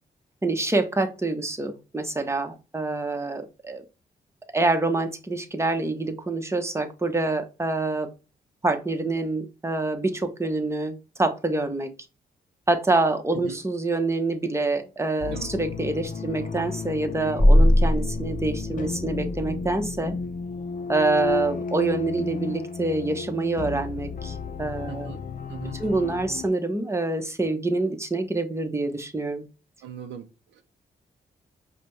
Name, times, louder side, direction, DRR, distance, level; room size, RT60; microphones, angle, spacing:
voice 1, 0.4-3.8 4.5-8.1 8.6-11.9 12.7-20.2 20.9-25.1 25.8-29.4, right 2 dB, 15° right, 1.0 m, -26 dB
sound 1, 15.2-26.5, left 5 dB, 50° left, 0.6 m, -33 dB
sound 2, 17.4-19.8, equal, 20° left, 1.3 m, -21 dB
voice 2, 24.9-25.2 25.5-25.8 29.8-30.6, right 9 dB, 90° right, 0.5 m, -40 dB
5.0 x 2.2 x 3.2 m
supercardioid pair, 50°, 18 cm